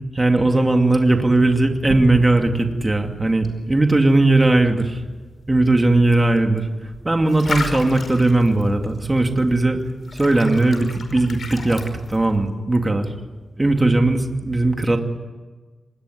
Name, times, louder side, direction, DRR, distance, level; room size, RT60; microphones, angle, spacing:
voice 1, 0.1-5.0 5.5-9.8 10.1-11.8 12.1-13.1 13.6-15.0, right 2 dB, 15° right, 4 dB, 2.6 m, -18 dB
sound 1, 0.8-12.5, left 3 dB, 55° left, 5.0 m, -37 dB
sound 2, 1.9-4.5, right 5 dB, 85° right, 1.9 m, -34 dB
26.5 x 20.0 x 9.5 m, 1.3 s
wide cardioid pair, 125°, 0 cm